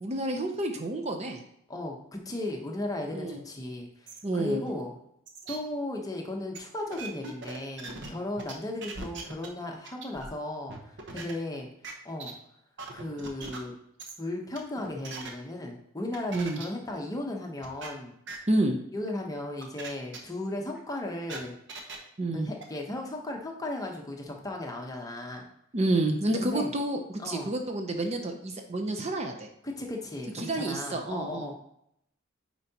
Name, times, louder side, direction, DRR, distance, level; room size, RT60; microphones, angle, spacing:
voice 1, 0.0-1.4 3.1-3.4 4.2-4.7 16.3-16.6 18.5-18.8 22.2-22.5 25.7-29.5 30.3-31.6, right 2 dB, 30° right, 4 dB, 0.6 m, -29 dB
voice 2, 1.7-5.0 5.5-11.7 12.0-12.3 12.9-13.7 14.2-18.1 18.9-21.5 22.3-25.4 26.3-26.7 27.2-27.5 29.6-31.6, left 1 dB, 15° left, 1 dB, 0.9 m, -36 dB
sound 1, 4.1-4.2 4.7-4.8 5.3-5.6 6.5-6.6 6.9-8.1 8.4-8.5 8.8-9.5 9.8-10.3 10.7-11.3 11.8-11.9 12.2-12.3 12.8-13.6 14.0-14.1 14.5-15.3 16.1-16.6 16.9-17.0 17.6-17.9 18.3-18.4 19.1-19.2 19.6-19.9 20.1-20.2 20.7-22.0 22.6-22.7, right 4 dB, 60° right, 1.0 m, -40 dB
9.1 x 4.6 x 2.8 m, 0.75 s
head